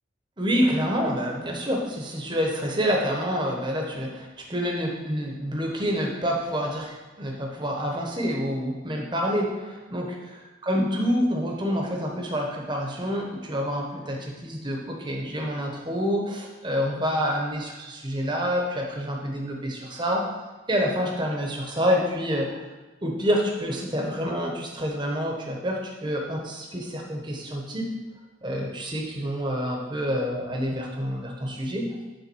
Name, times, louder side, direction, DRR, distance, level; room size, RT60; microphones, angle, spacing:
voice 1, 0.4-20.2 20.7-22.6 23.0-27.8 28.4-32.0, equal, 25° right, 0 dB, 1.0 m, -27 dB
7.0 x 3.5 x 6.2 m, 1.2 s
head